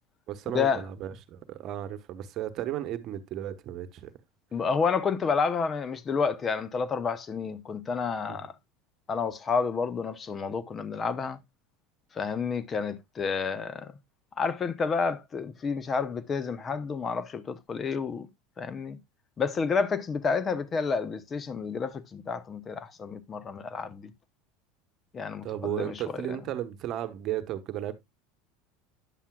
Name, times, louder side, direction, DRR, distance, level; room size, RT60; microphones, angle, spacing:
voice 1, 0.3-4.1 8.3-8.4 25.4-28.0, right 12 dB, 50° right, 1.1 m, -34 dB
voice 2, 4.5-8.5 9.1-11.4 12.1-13.9 14.4-18.3 18.6-19.0 19.4-24.1 25.1-25.9, left 5 dB, 30° left, 0.8 m, -30 dB
10.0 x 7.3 x 2.3 m
hypercardioid pair, 90°, 0 cm